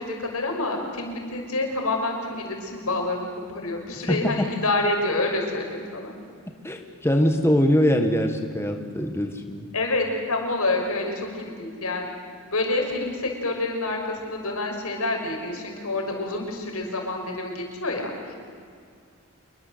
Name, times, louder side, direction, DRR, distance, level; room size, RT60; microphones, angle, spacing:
voice 1, 0.0-6.1 9.7-12.1 12.5-18.4, left 2 dB, 85° left, 2 dB, 5.6 m, -28 dB
voice 2, 4.1-4.5 6.6-9.7, equal, 10° left, 5 dB, 1.4 m, -22 dB
27.0 x 22.5 x 7.9 m, 2.2 s
head